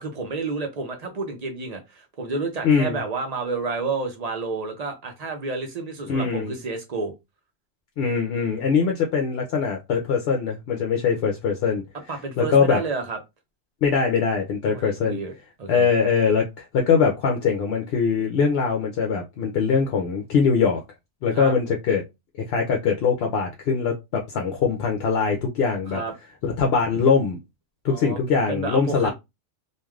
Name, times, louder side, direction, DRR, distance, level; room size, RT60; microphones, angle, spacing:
voice 1, 0.0-7.1 12.1-13.2 14.6-15.3 15.6-15.9 21.3-21.5 25.9-26.1 27.9-28.2 28.5-29.1, right 3 dB, 40° right, 0.7 m, -30 dB
voice 2, 2.6-3.0 6.1-6.5 8.0-11.8 12.4-12.8 13.8-15.2 15.7-20.8 21.2-22.0 22.3-26.0 26.4-27.4 27.8-29.1, left 5 dB, 65° left, 0.7 m, -22 dB
3.2 x 2.4 x 2.3 m
omnidirectional pair, 1.2 m